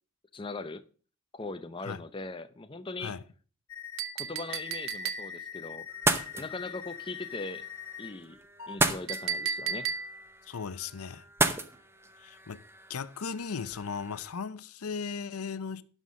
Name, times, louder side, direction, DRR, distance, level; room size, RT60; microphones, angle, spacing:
voice 1, 0.3-0.8 1.3-3.2 4.1-5.9 6.4-7.7 8.0-8.4 8.7-9.9, left 3 dB, 25° left, 0.5 m, -40 dB
sound 1, 3.7-4.0 4.5-8.1 8.6-8.8, left 9 dB, 70° left, 1.1 m, -43 dB
Chink clink, 4.0-5.6 9.1-10.4, right 7 dB, 70° right, 0.9 m, -34 dB
sound 2, 5.9-14.3, right 2 dB, 10° right, 0.7 m, -34 dB
voice 2, 10.4-11.3 12.2-12.6 12.9-15.8, left 5 dB, 90° left, 0.6 m, -37 dB
12.0 x 5.6 x 6.2 m
head